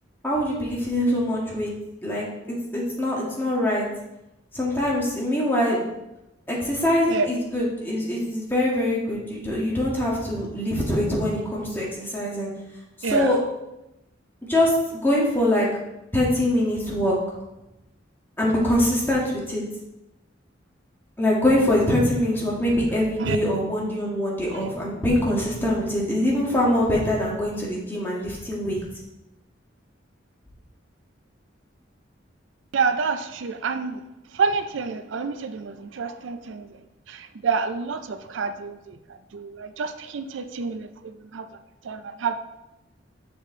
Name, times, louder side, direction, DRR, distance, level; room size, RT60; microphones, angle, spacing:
voice 1, 0.2-1.7 2.0-3.9 4.5-5.9 6.5-12.5 13.0-13.4 14.5-15.7 16.1-17.1 18.4-19.6 21.2-28.8, left 1 dB, 10° left, -5 dB, 1.5 m, -23 dB
voice 2, 13.0-13.3 23.2-23.4 24.5-24.6 32.7-34.0 34.3-36.8 37.1-39.0 39.3-41.5 41.8-42.3, right 5 dB, 85° right, 10 dB, 0.4 m, -28 dB
6.6 x 4.9 x 3.7 m, 0.92 s
head